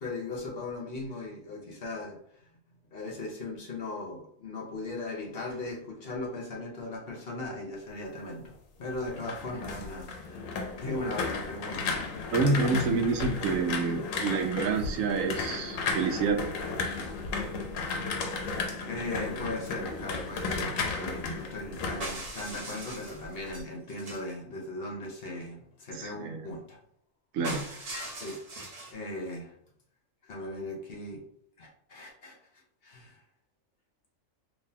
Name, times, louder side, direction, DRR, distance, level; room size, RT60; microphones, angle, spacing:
voice 1, 0.0-2.4 2.9-8.5 8.8-12.2 18.8-26.8 28.0-28.4 28.9-29.5 30.2-31.2 31.6-32.4 32.8-33.2, left 2 dB, 50° left, -1 dB, 1.0 m, -38 dB
sound 1, 8.9-22.9 23.2-23.6, left 4 dB, 80° left, 1.0 m, -34 dB
voice 2, 12.3-16.4 26.0-26.5 27.3-27.7, right 4 dB, 85° right, 5 dB, 1.0 m, -28 dB
sound 2, 22.0-24.3 27.4-28.9, right 1 dB, 35° right, 0.7 m, -40 dB
3.7 x 2.9 x 2.7 m, 0.66 s
omnidirectional pair, 1.4 m